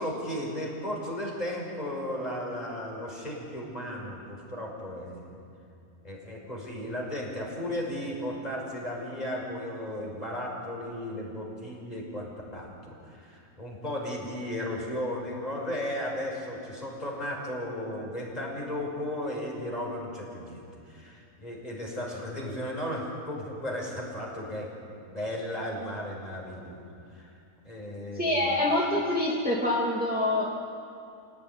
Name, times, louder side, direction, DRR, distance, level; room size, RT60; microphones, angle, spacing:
voice 1, 0.0-5.4 6.0-24.7 25.0-26.8 27.1-28.7, left 1 dB, 25° left, -2 dB, 6.1 m, -35 dB
voice 2, 28.1-30.5, left 1 dB, 5° right, -4 dB, 2.7 m, -26 dB
29.5 x 18.0 x 9.7 m, 2.6 s
omnidirectional pair, 1.5 m